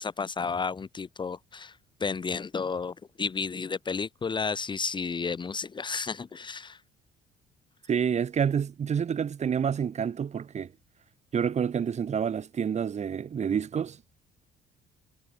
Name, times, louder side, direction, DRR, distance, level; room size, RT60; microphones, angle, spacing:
voice 1, 0.0-1.7 2.0-6.8, left 5 dB, 30° left, 1.5 m, -32 dB
voice 2, 7.9-10.7 11.3-14.0, right 7 dB, 40° right, 5.4 m, -28 dB
cardioid pair, 110°, 17 cm